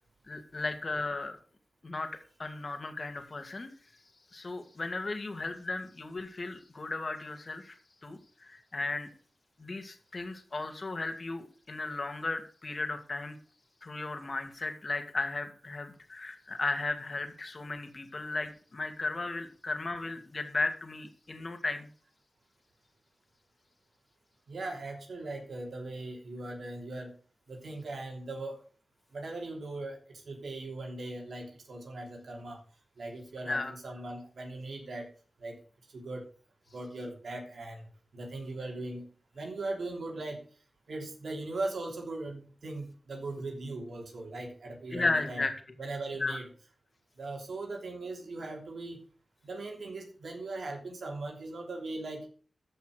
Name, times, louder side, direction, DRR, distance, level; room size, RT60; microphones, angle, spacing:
voice 1, 0.3-1.4 1.8-2.1 2.4-3.7 4.3-7.8 8.0-9.1 9.6-13.4 13.8-21.9 33.5-33.7 44.9-45.5 46.2-46.4, left 3 dB, 50° left, 6 dB, 2.3 m, -35 dB
voice 2, 24.5-27.1 27.5-28.6 29.1-32.6 33.0-35.1 35.4-35.6 35.9-36.3 36.7-39.1 39.3-40.4 40.9-45.4 45.8-46.5 47.2-49.0 49.4-52.3, right 2 dB, 80° right, 1 dB, 3.2 m, -39 dB
14.5 x 5.7 x 6.5 m, 0.41 s
wide cardioid pair, 65°, 0 cm